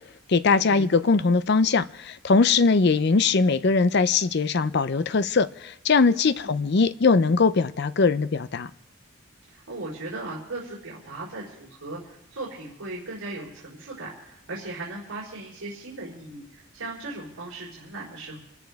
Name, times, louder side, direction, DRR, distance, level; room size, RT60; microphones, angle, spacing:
voice 1, 0.3-8.7, left 4 dB, 50° left, 0.5 m, -21 dB
voice 2, 9.5-18.4, right 2 dB, 85° right, 4.1 m, -37 dB
27.0 x 14.0 x 3.5 m
head